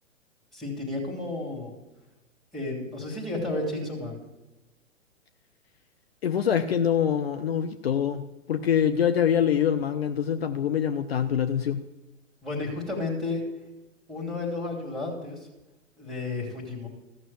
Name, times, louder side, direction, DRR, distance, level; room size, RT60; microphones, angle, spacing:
voice 1, 0.5-1.7 2.5-4.2 12.4-13.4 14.1-15.5 16.0-16.9, left 2 dB, ahead, -1 dB, 2.8 m, -32 dB
voice 2, 6.2-8.2 8.5-11.8, left 8 dB, 50° left, 9 dB, 0.7 m, -24 dB
14.0 x 6.3 x 7.6 m, 1.1 s
figure-of-eight pair, 115°, 38 cm